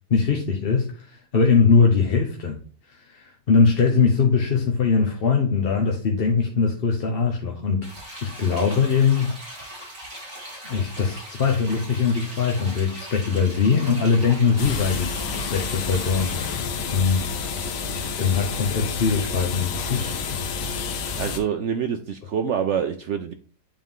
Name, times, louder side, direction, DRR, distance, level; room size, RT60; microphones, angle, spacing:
voice 1, 0.1-2.6 2.9-7.8 8.2-9.3 10.6-15.1 15.4-16.6 16.9-17.3 17.9-20.3 20.9-21.2, left 5 dB, 45° left, 1 dB, 0.9 m, -21 dB
sound 1, 7.8-16.6, equal, 50° right, 3.1 m, -39 dB
sound 2, 14.6-21.4, left 5 dB, 80° left, 1.4 m, -29 dB
voice 2, 21.2-23.3, right 8 dB, 80° right, 7 dB, 0.6 m, -26 dB
8.7 x 3.7 x 3.6 m, 0.39 s
omnidirectional pair, 1.8 m